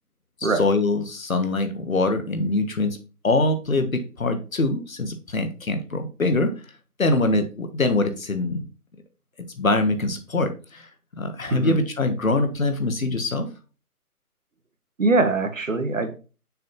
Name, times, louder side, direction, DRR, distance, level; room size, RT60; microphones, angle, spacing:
voice 1, 0.4-3.0 3.2-6.5 7.0-8.6 9.6-10.9 11.2-13.5, left 2 dB, 60° left, 1.6 m, -23 dB
voice 2, 15.0-16.2, right 3 dB, 55° right, 1.3 m, -22 dB
6.5 x 5.7 x 2.8 m
figure-of-eight pair, 170°, 46 cm